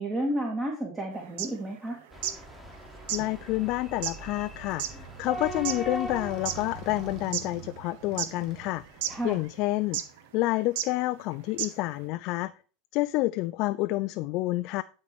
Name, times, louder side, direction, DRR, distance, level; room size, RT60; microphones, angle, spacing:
voice 1, 0.0-2.0 9.1-9.4, right 1 dB, 20° right, 1.9 m, -31 dB
sound 1, 1.3-2.4 2.7-2.8 3.1-6.7 7.1-7.9 8.2-8.7 9.0-9.1 9.9-10.2 10.8-10.9 11.2-11.3 11.6-11.9, right 11 dB, 75° right, 0.9 m, -33 dB
sound 2, 2.1-7.2, equal, ahead, 1.6 m, -40 dB
voice 2, 3.1-8.8 9.2-10.0 10.3-12.5 12.9-14.8, left 18 dB, 55° left, 0.3 m, -29 dB
Motorcycle, 3.6-10.3, right 5 dB, 50° right, 1.7 m, -47 dB
11.5 x 4.3 x 4.5 m
supercardioid pair, 120°, 0 cm